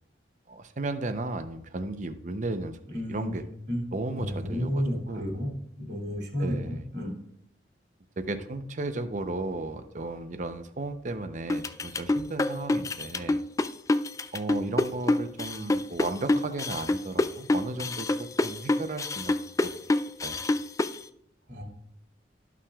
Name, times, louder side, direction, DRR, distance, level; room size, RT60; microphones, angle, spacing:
voice 1, 0.5-3.4 3.9-5.3 6.4-6.9 8.2-13.4 14.3-20.4, right 2 dB, 45° right, 9 dB, 0.7 m, -35 dB
voice 2, 2.9-3.4 3.7-3.8 4.1-5.5 5.8-7.1 21.5-21.6, equal, 65° right, -1 dB, 2.6 m, -31 dB
sound 1, 11.5-21.0, left 2 dB, 20° left, 0.3 m, -26 dB
13.0 x 5.8 x 2.4 m, 0.75 s
head